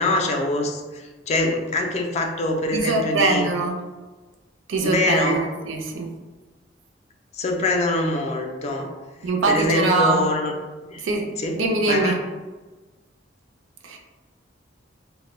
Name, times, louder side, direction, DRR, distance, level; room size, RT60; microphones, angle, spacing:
voice 1, 0.0-3.5 4.8-5.4 7.3-8.9 9.5-10.5 10.9-11.0 11.4-11.6 11.9-12.2, left 2 dB, 35° left, 2 dB, 0.3 m, -24 dB
voice 2, 2.7-3.8 4.7-6.1 9.2-10.3 11.0-11.3 11.6-12.1 13.8-14.0, right 3 dB, 80° right, 2 dB, 0.4 m, -22 dB
2.1 x 2.1 x 3.0 m, 1.3 s
head